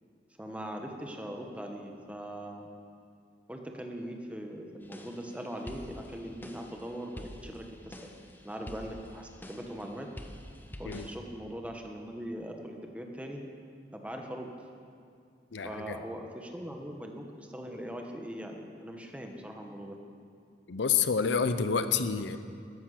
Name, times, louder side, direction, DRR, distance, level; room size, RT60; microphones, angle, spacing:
voice 1, 0.4-2.7 3.5-8.1 8.4-10.1 10.8-13.4 13.9-14.5 15.6-20.0, equal, 5° right, 2 dB, 1.1 m, -41 dB
sound 1, 4.8-11.2, equal, 10° left, 0.8 m, -47 dB
voice 2, 15.5-16.0 20.7-22.4, left 6 dB, 90° left, 11 dB, 0.6 m, -28 dB
13.5 x 10.5 x 6.5 m, 2.3 s
head